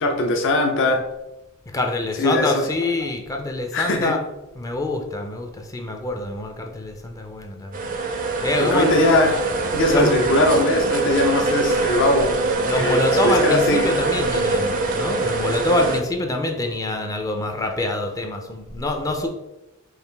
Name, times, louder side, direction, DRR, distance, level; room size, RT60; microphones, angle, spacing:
voice 1, 0.0-1.0 2.2-2.7 3.7-4.1 8.6-9.4 9.7-12.3 12.7-13.9, left 1 dB, 60° left, 3 dB, 0.6 m, -20 dB
voice 2, 1.7-4.2 4.6-7.8 8.4-8.9 9.9-10.1 12.6-19.3, left 2 dB, 15° left, 3 dB, 0.4 m, -25 dB
sound 1, 7.7-16.0, right 3 dB, 40° right, 0.5 m, -23 dB
4.8 x 2.5 x 3.3 m, 0.95 s
head